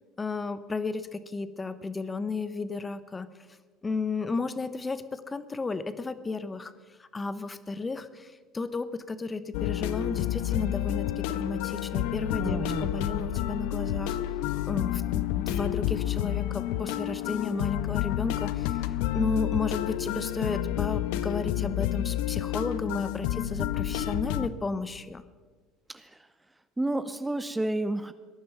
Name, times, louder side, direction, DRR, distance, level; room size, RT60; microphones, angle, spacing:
voice 1, 0.2-3.3 3.8-6.7 7.0-14.2 14.7-18.8 19.1-25.2, left 3 dB, 20° left, 13 dB, 0.9 m, -33 dB
sound 1, 9.5-24.5, left 13 dB, 65° left, 0.5 m, -30 dB
voice 2, 12.4-12.9 25.9-26.3 26.8-28.1, right 1 dB, 10° right, 12 dB, 0.7 m, -30 dB
18.5 x 11.0 x 6.0 m, 1.4 s
hypercardioid pair, 65°, 0 cm